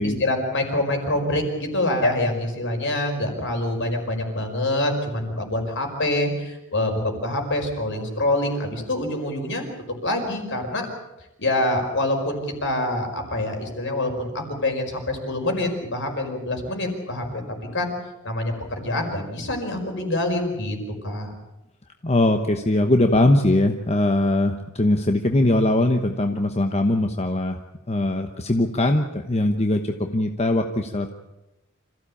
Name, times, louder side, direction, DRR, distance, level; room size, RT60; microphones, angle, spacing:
voice 1, 0.0-9.7 10.0-10.9 11.4-17.4 17.7-17.9 18.2-20.8 21.0-21.3, left 1 dB, 60° left, 4 dB, 5.1 m, -25 dB
voice 2, 22.0-27.6 27.9-31.1, left 1 dB, 30° left, 5 dB, 1.1 m, -21 dB
26.5 x 15.5 x 8.6 m, 0.98 s
head